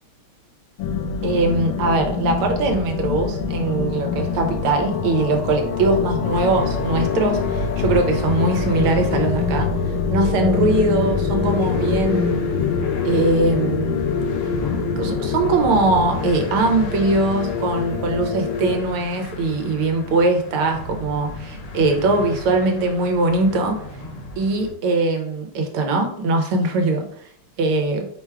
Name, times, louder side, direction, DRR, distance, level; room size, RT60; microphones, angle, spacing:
sound 1, 0.8-18.8, left 5 dB, 75° left, 1.3 m, -24 dB
voice 1, 1.2-9.7 10.1-12.4 13.1-14.0 14.9-23.7 24.4-27.1 27.6-28.1, right 2 dB, 85° right, 4 dB, 1.7 m, -21 dB
sound 2, 6.3-24.7, left 1 dB, 90° left, 1.9 m, -35 dB
5.1 x 2.2 x 4.7 m, 0.65 s
omnidirectional pair, 2.3 m